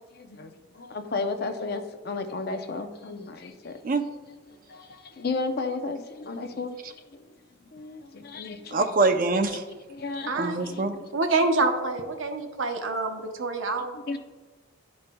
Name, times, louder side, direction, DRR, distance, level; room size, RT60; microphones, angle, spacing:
voice 1, 0.1-3.8 4.5-6.8 7.1-7.3 7.6-8.8 9.5-9.6 9.9-11.1 13.9-14.2, left 3 dB, 50° left, 0.5 m, -34 dB
voice 2, 8.7-9.6 10.3-10.9, right 3 dB, 40° right, 0.5 m, -24 dB
voice 3, 10.3-10.6 11.1-14.0, right 3 dB, 65° right, 0.8 m, -26 dB
11.5 x 5.3 x 2.2 m
head